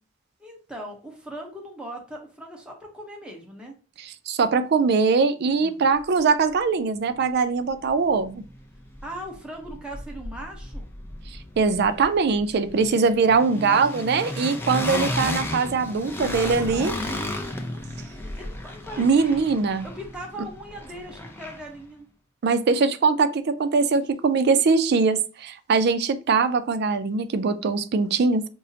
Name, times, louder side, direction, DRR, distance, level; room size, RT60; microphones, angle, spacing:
voice 1, 0.4-3.7 5.6-5.8 9.0-10.9 13.4-14.9 15.8-17.8 18.2-19.4 19.8-22.1, right 1 dB, 5° right, -1 dB, 0.9 m, -40 dB
voice 2, 4.3-8.4 11.6-16.9 19.0-19.8 22.4-28.5, right 4 dB, 55° right, 10 dB, 0.4 m, -22 dB
sound 1, 7.8-7.9 8.2-9.4 9.6-21.8, left 1 dB, 10° left, 0.4 m, -34 dB
5.2 x 2.1 x 2.7 m, 0.34 s
head